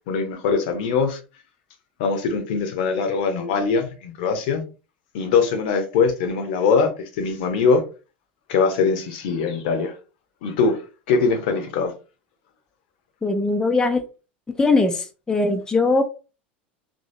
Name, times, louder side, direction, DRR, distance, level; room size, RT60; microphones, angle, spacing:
voice 1, 0.1-1.2 2.0-4.6 5.1-6.9 7.2-7.8 8.5-9.9 10.4-10.8 11.1-11.9, left 5 dB, 55° left, 0.7 m, -22 dB
voice 2, 13.2-14.0 14.6-16.0, left 3 dB, 10° left, 0.4 m, -20 dB
3.0 x 2.6 x 2.6 m
figure-of-eight pair, 75°, 6 cm